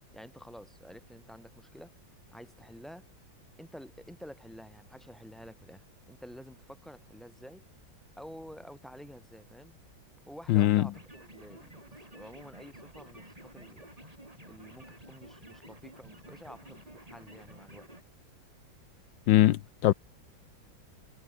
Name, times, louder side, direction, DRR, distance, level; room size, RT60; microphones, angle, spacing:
voice 1, 0.1-1.9 2.3-3.0 3.6-7.6 8.2-9.8 10.3-11.8 12.1-13.9 14.5-17.9, equal, ahead, 5.9 m, -50 dB
voice 2, 10.5-10.9 19.3-19.9, left 14 dB, 80° left, 1.4 m, -22 dB
sound 1, 10.9-18.0, right 1 dB, 20° right, 5.1 m, -52 dB
omnidirectional pair, 2.1 m